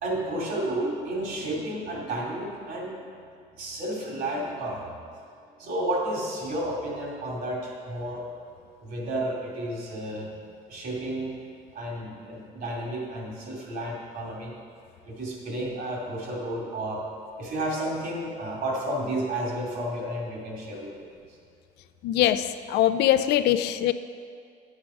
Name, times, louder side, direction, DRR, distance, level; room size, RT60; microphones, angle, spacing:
voice 1, 0.0-2.9 3.6-4.9 5.6-8.2 8.8-10.3 10.7-11.3 11.7-14.5 15.0-17.0 17.4-21.0, right 1 dB, 65° right, -2 dB, 2.7 m, -31 dB
voice 2, 22.0-23.9, left 12 dB, 80° left, 12 dB, 0.4 m, -22 dB
9.2 x 7.3 x 5.0 m, 2.2 s
cardioid pair, 110°, 17 cm